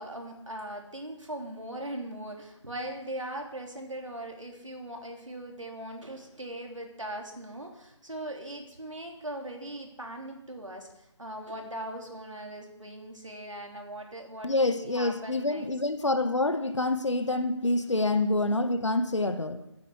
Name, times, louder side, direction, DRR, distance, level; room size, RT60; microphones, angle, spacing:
voice 1, 0.0-15.7 18.0-18.1, right 1 dB, 90° right, 2 dB, 3.6 m, -40 dB
voice 2, 14.4-19.7, left 2 dB, 75° left, 9 dB, 1.6 m, -27 dB
10.0 x 9.8 x 8.2 m, 0.85 s
figure-of-eight pair, 165°, 16 cm